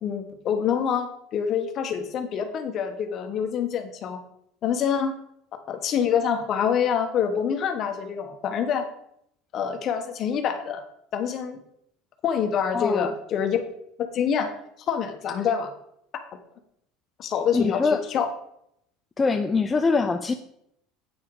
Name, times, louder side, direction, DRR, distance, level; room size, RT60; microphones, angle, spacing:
voice 1, 0.0-4.2 4.6-5.1 5.7-8.9 9.5-10.8 11.1-11.6 12.2-13.7 14.1-14.5 14.9-15.7 17.2-18.3, left 7 dB, 45° left, 7 dB, 1.2 m, -26 dB
voice 2, 12.7-13.1 17.5-18.0 19.2-20.3, left 4 dB, 20° left, 7 dB, 0.5 m, -23 dB
8.6 x 5.9 x 4.8 m, 0.75 s
supercardioid pair, 120°, 0 cm